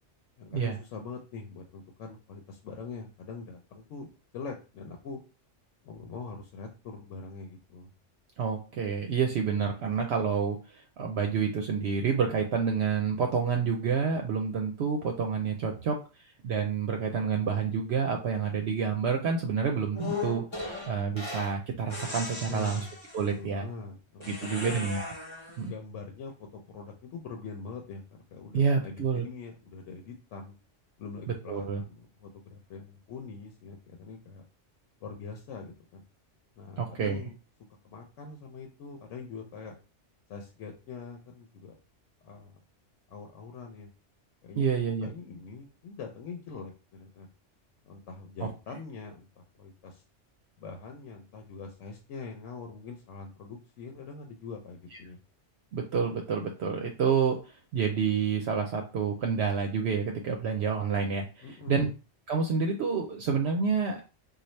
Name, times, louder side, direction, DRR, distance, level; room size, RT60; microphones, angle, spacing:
voice 1, 0.4-4.1 4.3-5.2 5.8-7.9 22.5-22.9 23.4-24.9 25.7-30.5 31.0-34.4 35.0-36.0 36.6-37.4 37.9-39.7 40.3-41.7 42.2-42.6 43.1-43.9 44.4-47.3 47.8-49.3 49.5-50.0 50.6-55.2 61.4-61.9, left 4 dB, 90° left, 3 dB, 1.0 m, -43 dB
voice 2, 8.4-16.0 16.4-22.8 23.1-23.7 24.3-25.1 25.6-25.7 28.5-29.3 31.5-31.8 36.8-37.2 44.6-45.1 48.4-48.5 55.7-61.9 62.3-64.0, right 6 dB, 70° right, 3 dB, 0.8 m, -28 dB
sound 1, 20.0-21.6 21.9-23.4 24.2-25.6, left 3 dB, 25° left, 0.8 m, -38 dB
4.0 x 2.3 x 3.1 m, 0.32 s
omnidirectional pair, 1.2 m